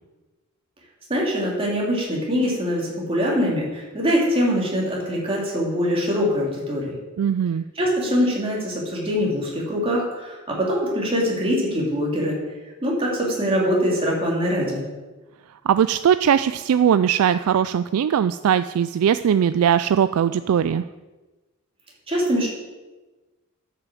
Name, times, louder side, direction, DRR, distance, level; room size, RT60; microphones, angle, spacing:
voice 1, 1.1-7.0 7.7-12.4 12.8-14.9 22.1-22.5, equal, 25° right, -3 dB, 3.0 m, -23 dB
voice 2, 7.2-7.6 15.7-20.8, right 8 dB, 75° right, 12 dB, 0.3 m, -20 dB
9.8 x 6.7 x 7.5 m, 1.2 s
head